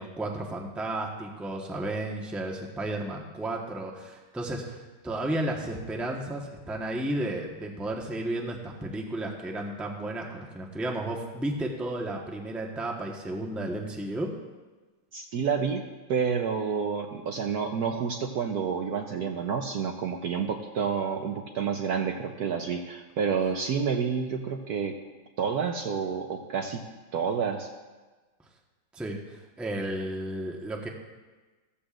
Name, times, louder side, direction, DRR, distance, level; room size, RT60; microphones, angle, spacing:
voice 1, 0.0-14.3 28.9-30.9, right 1 dB, ahead, 0 dB, 0.9 m, -33 dB
voice 2, 15.1-15.8 16.1-25.0 25.4-26.8 27.1-27.7, right 6 dB, 65° right, 3 dB, 1.1 m, -29 dB
15.5 x 14.0 x 2.5 m, 1.3 s
omnidirectional pair, 2.1 m